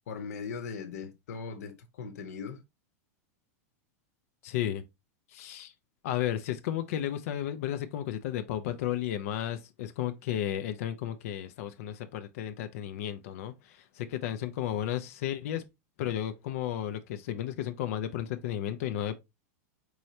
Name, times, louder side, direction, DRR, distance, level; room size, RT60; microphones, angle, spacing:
voice 1, 0.1-2.6, left 5 dB, 80° left, 1.0 m, -39 dB
voice 2, 4.4-4.8 5.3-5.7 6.0-15.6 16.0-19.1, left 11 dB, 65° left, 0.5 m, -33 dB
4.6 x 3.2 x 2.7 m
supercardioid pair, 145°, 8 cm